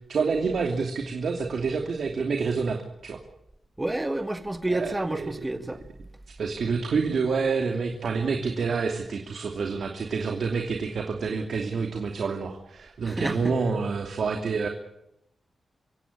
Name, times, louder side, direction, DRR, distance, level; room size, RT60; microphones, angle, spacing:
voice 1, 0.1-3.2 4.7-5.4 6.4-14.7, right 5 dB, 70° right, 2.7 m, -28 dB
voice 2, 3.8-5.8 13.1-13.5, right 2 dB, 15° right, 1.6 m, -29 dB
26.0 x 16.5 x 9.9 m
wide cardioid pair, 125°, 0 cm